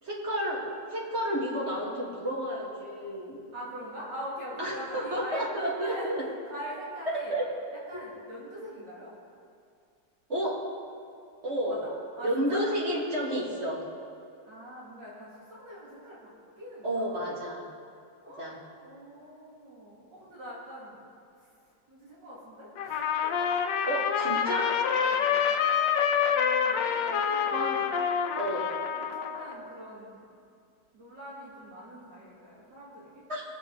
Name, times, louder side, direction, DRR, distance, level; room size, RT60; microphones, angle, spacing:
voice 1, 0.0-3.4 4.6-6.2 7.1-7.5 10.3-10.6 11.4-11.8 12.2-13.8 16.8-17.6 18.4-18.6 23.9-24.8 27.5-27.9 28.4-28.7 33.3-33.4, equal, 35° right, -4 dB, 2.2 m, -31 dB
voice 2, 3.5-5.5 5.7-6.1 6.4-7.3 7.9-9.1 11.5-12.6 14.4-16.3 16.6-17.2 18.2-18.5 18.8-21.1 21.4-21.6 21.9-23.5 24.6-25.5 25.7-26.0 26.3-27.5 28.9-30.4 30.9-33.3, equal, 75° right, -7 dB, 2.9 m, -43 dB
Trumpet, 22.8-29.5, left 7 dB, 80° left, 1.4 m, -27 dB
21.0 x 7.0 x 3.8 m, 2.4 s
omnidirectional pair, 1.9 m